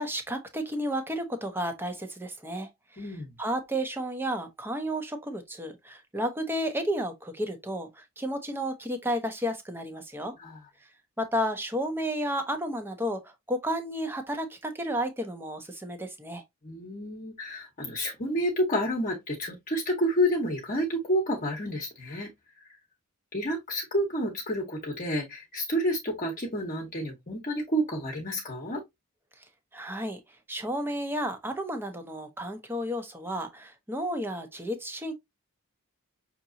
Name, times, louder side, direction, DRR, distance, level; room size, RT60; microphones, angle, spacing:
voice 1, 0.0-10.3 11.2-16.4 29.7-30.2 30.5-35.1, equal, 10° right, 0.6 m, -32 dB
voice 2, 3.0-3.3 10.4-10.6 16.6-22.3 23.3-28.8, equal, 35° left, 0.9 m, -29 dB
5.9 x 2.9 x 2.6 m
head